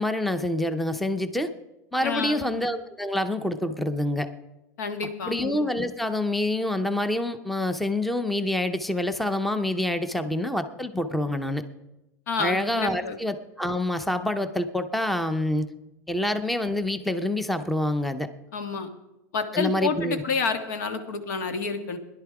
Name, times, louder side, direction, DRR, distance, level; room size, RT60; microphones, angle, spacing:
voice 1, 0.0-1.5 1.9-4.3 5.3-11.6 12.4-15.7 16.1-18.3 19.5-20.2, left 1 dB, ahead, 10 dB, 0.5 m, -27 dB
voice 2, 2.0-2.4 4.8-5.4 12.3-13.2 18.5-18.9 19.3-22.0, left 5 dB, 90° left, 8 dB, 1.6 m, -29 dB
16.0 x 11.0 x 4.7 m, 1.0 s
supercardioid pair, 150°, 9 cm